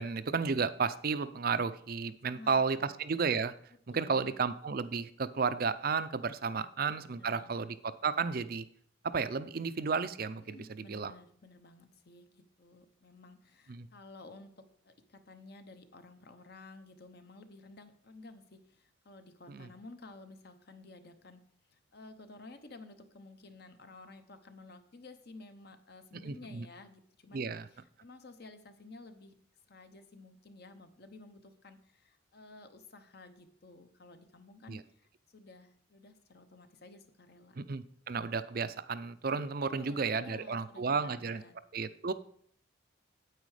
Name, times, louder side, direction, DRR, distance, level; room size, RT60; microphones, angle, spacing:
voice 1, 0.0-3.5 3.9-8.6 9.0-11.1 13.7-13.9 19.5-19.7 26.2-26.7 27.3-27.7 34.7-34.8 37.6-41.4 41.7-42.1, right 5 dB, 45° right, 14 dB, 0.5 m, -33 dB
voice 2, 2.3-2.9 3.9-4.4 6.6-6.7 7.1-7.6 10.5-21.4 21.7-27.4 27.7-29.3 29.7-37.8 39.6-41.6, left 2 dB, 50° left, 8 dB, 0.9 m, -53 dB
9.2 x 8.2 x 4.9 m, 0.63 s
head